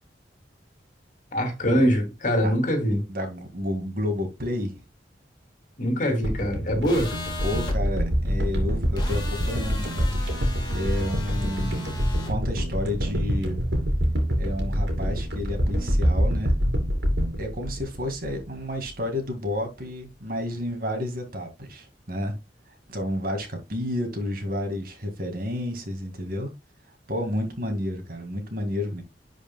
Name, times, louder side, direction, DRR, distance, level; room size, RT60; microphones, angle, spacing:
voice 1, 1.3-3.0 5.8-7.1, equal, 45° left, 2.5 m, -23 dB
voice 2, 3.1-4.8 7.4-10.2 10.7-11.9 12.2-13.7 14.4-16.5 17.4-22.4 22.9-26.5 27.1-29.0, left 1 dB, 55° right, 2.1 m, -30 dB
sound 1, 6.2-18.6 18.9-19.0, equal, 80° right, 2.9 m, -26 dB
sound 2, 6.8-7.8 9.0-12.3, left 3 dB, 25° left, 2.3 m, -38 dB
11.0 x 5.1 x 2.3 m
head